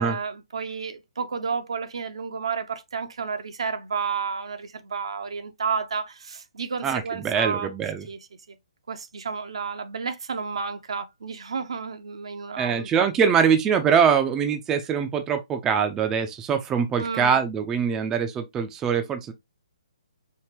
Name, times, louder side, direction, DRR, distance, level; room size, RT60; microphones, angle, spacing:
voice 1, 0.0-7.7 8.1-8.2 8.5-8.6 8.9-12.9 17.0-17.4, right 5 dB, 65° right, 0.7 m, -31 dB
voice 2, 6.8-8.1 12.6-19.3, right 7 dB, 15° right, 0.5 m, -23 dB
4.7 x 2.8 x 2.8 m
figure-of-eight pair, 130°, 3 cm